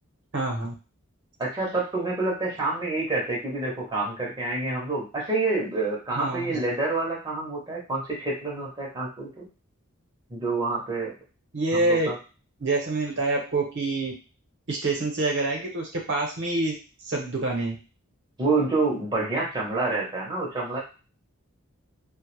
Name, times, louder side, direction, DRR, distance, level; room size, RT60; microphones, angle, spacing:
voice 1, 0.3-0.7 6.1-6.6 11.5-12.1 12.6-14.1 14.7-16.7 17.1-17.8, right 2 dB, 60° right, 0 dB, 0.7 m, -26 dB
voice 2, 1.4-9.5 10.3-11.1 11.7-12.2 18.4-20.8, right 3 dB, 20° right, -4 dB, 0.6 m, -28 dB
2.2 x 2.0 x 3.0 m, 0.33 s
head